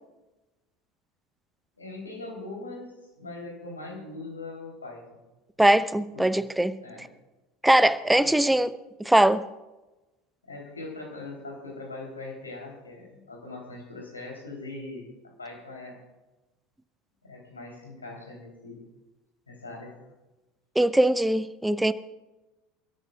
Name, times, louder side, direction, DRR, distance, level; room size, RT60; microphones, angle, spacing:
voice 1, 1.8-2.9 3.2-5.2 6.1-6.3 6.8-7.0 8.2-8.4 10.4-16.0 17.2-18.8 19.5-20.0, left 2 dB, 80° left, 3.4 m, -41 dB
voice 2, 5.6-7.1 7.6-8.7 9.0-9.5 20.8-21.9, right 1 dB, 5° right, 0.6 m, -21 dB
27.5 x 13.5 x 2.4 m
figure-of-eight pair, 70°, 0 cm